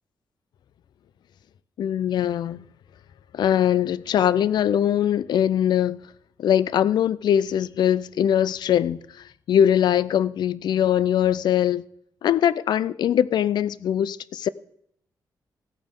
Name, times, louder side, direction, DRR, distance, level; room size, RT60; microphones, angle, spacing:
voice 1, 1.8-2.6 3.3-6.0 6.4-11.8 12.2-14.5, left 10 dB, 75° left, 0.4 m, -22 dB
15.5 x 8.7 x 3.7 m
wide cardioid pair, 150°, 7 cm